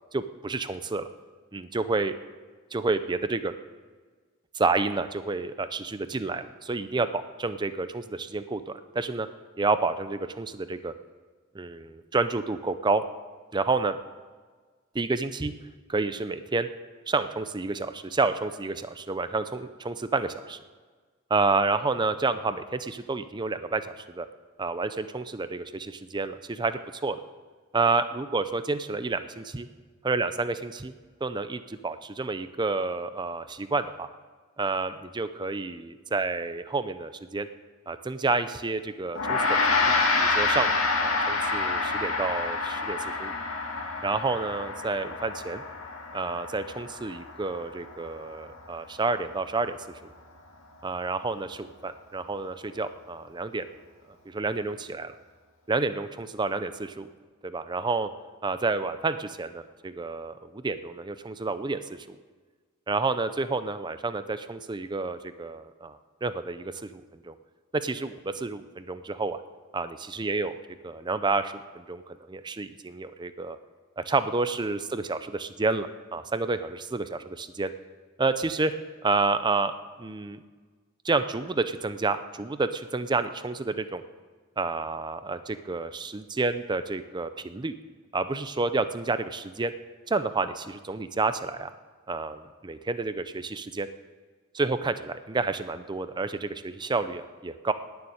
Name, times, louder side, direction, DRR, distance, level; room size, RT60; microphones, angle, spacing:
voice 1, 0.1-1.1 1.5-2.1 2.7-3.5 4.5-9.3 9.6-10.9 11.5-13.0 13.5-14.0 14.9-15.5 15.9-16.7 17.1-20.6 21.3-24.3 24.6-27.2 27.7-29.7 30.0-30.9 31.2-34.1 34.6-37.5 37.9-39.4 39.8-43.3 44.0-45.6 46.1-49.8 50.0-50.1 50.8-53.6 54.3-55.1 55.7-57.1 57.4-58.1 58.4-62.2 62.9-67.3 67.7-69.4 69.7-70.6 70.8-73.6 74.0-77.7 78.2-78.7 79.0-79.7 80.0-80.4 81.0-84.0 84.6-87.8 88.1-89.7 90.1-91.7 92.1-93.9 94.5-97.7, right 3 dB, 20° right, 11 dB, 0.5 m, -29 dB
Gong, 39.2-48.7, left 3 dB, 75° left, 2.3 m, -28 dB
15.5 x 7.1 x 9.8 m, 1.4 s
head